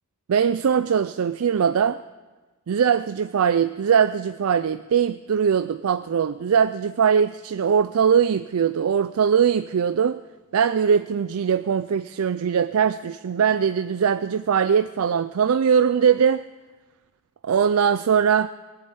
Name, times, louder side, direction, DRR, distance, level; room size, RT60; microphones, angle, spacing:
voice 1, 0.3-2.0 2.7-10.2 10.5-16.4 17.5-18.5, right 7 dB, 75° right, 13 dB, 0.4 m, -21 dB
19.5 x 7.9 x 8.8 m, 1.2 s
head